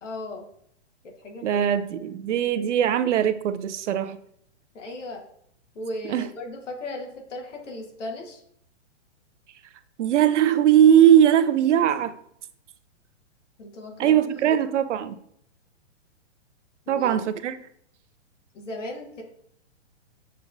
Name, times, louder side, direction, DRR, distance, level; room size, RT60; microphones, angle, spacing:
voice 1, 0.0-0.4 1.2-1.7 4.7-5.2 5.7-8.4 13.6-14.6 16.9-17.3 18.5-19.2, left 1 dB, 90° left, 1.3 m, -36 dB
voice 2, 1.4-4.2 6.1-6.3 10.0-12.2 14.0-15.2 16.9-17.6, right 10 dB, 80° right, 0.5 m, -20 dB
6.7 x 3.1 x 2.5 m
hypercardioid pair, 145°, 36 cm